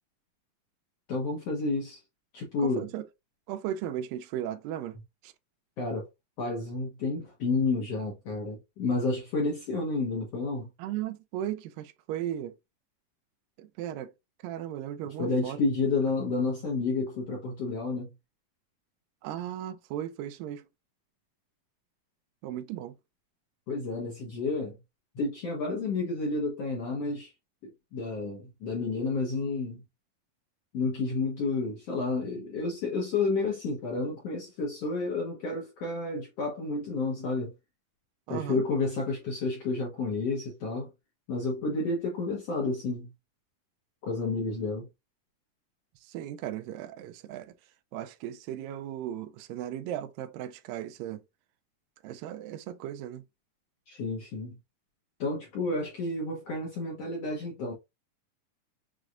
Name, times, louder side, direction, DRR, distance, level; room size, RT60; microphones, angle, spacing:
voice 1, 1.1-2.0 2.3-2.9 5.8-6.1 6.4-10.7 15.2-18.1 23.7-24.8 25.2-27.3 27.9-29.8 30.7-37.5 38.3-40.9 41.3-43.1 44.0-44.9 53.9-54.6 55.2-57.7, left 3 dB, 65° left, 1.6 m, -30 dB
voice 2, 2.6-3.0 3.5-5.0 5.2-5.3 10.8-12.6 13.6-14.1 14.4-15.6 19.2-20.7 22.4-22.9 38.3-38.6 46.0-47.5 47.9-51.2 52.0-53.2, right 11 dB, 85° right, 2.2 m, -36 dB
6.2 x 3.2 x 2.4 m
omnidirectional pair, 4.0 m